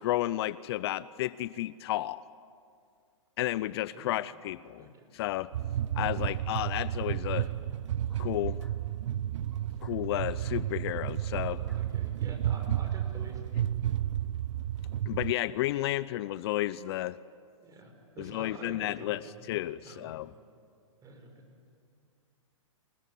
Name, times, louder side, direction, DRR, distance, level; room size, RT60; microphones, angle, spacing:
voice 1, 0.0-2.2 3.4-4.9 5.1-5.5 5.9-7.5 8.2-8.6 9.8-11.6 15.1-17.2 18.2-20.3, left 15 dB, 50° left, 18 dB, 0.6 m, -32 dB
sound 1, 5.5-15.3, right 11 dB, 65° right, 0.7 m, -32 dB
Bark, 6.9-7.1 8.1-8.8 9.8-10.0 10.4-10.6 11.2-11.9, left 1 dB, 5° left, 1.9 m, -61 dB
voice 2, 7.3-7.7 11.5-13.5 17.6-19.4 19.8-20.1 21.0-21.3, right 2 dB, 20° right, 4 dB, 5.3 m, -48 dB
26.5 x 20.0 x 9.4 m, 2.3 s
hypercardioid pair, 120°, 17 cm